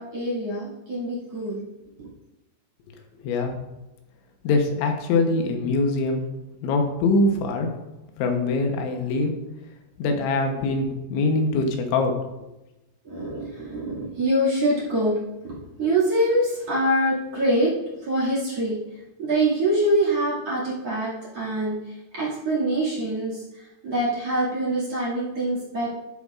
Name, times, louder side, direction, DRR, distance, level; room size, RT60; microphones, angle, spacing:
voice 1, 0.0-1.6 2.0-2.1 13.0-15.2 15.4-17.7 18.0-18.8 19.2-25.9, right 1 dB, 40° right, -6 dB, 2.7 m, -25 dB
voice 2, 3.2-3.6 4.5-6.3 6.6-7.7 8.2-9.3 10.0-12.1, left 3 dB, 90° left, 4 dB, 3.5 m, -23 dB
12.0 x 7.1 x 2.5 m, 0.96 s
omnidirectional pair, 5.2 m